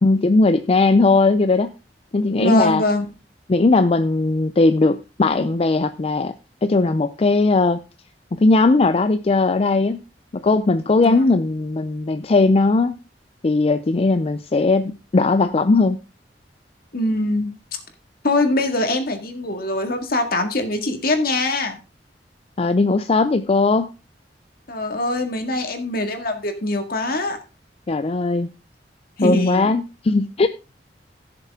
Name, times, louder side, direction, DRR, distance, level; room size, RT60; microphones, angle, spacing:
voice 1, 0.0-1.7 2.1-2.8 3.5-6.3 6.6-7.8 8.3-10.0 10.3-13.0 13.4-16.0 22.6-23.9 27.9-28.5 29.2-30.5, left 3 dB, 35° left, 11 dB, 0.4 m, -18 dB
voice 2, 2.3-3.1 11.0-11.2 16.9-17.5 18.2-21.8 24.7-27.4 29.2-29.7, left 2 dB, 60° left, 7 dB, 1.9 m, -23 dB
15.5 x 6.7 x 3.6 m, 0.31 s
head